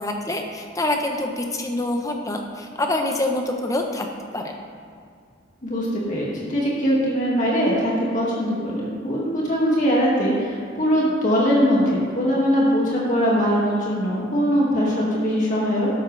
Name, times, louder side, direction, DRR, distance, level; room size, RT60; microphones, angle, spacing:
voice 1, 0.0-4.1 4.3-4.5, left 1 dB, 15° left, 3 dB, 1.0 m, -26 dB
voice 2, 5.6-15.9, equal, 40° left, -5 dB, 2.2 m, -21 dB
12.5 x 11.0 x 3.4 m, 2.3 s
head